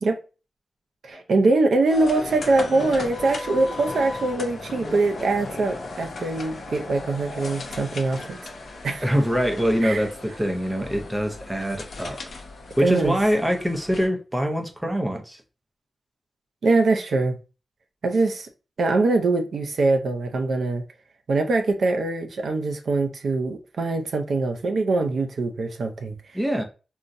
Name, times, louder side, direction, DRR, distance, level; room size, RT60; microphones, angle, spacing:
voice 1, 1.0-8.4 8.8-9.0 9.8-10.0 12.8-13.2 16.6-17.4 18.0-18.5 18.8-20.8 21.3-26.2, right 3 dB, 75° right, 0.4 m, -23 dB
Telephone, 1.1-1.2 1.6-3.0 3.6-5.9 6.2-8.9, equal, 20° left, 1.2 m, -44 dB
sound 1, 1.9-14.1, left 3 dB, 75° left, 0.6 m, -37 dB
voice 2, 9.0-12.2 12.8-15.4 26.3-26.6, equal, 10° right, 0.5 m, -24 dB
3.7 x 2.1 x 2.5 m
wide cardioid pair, 155°, 0 cm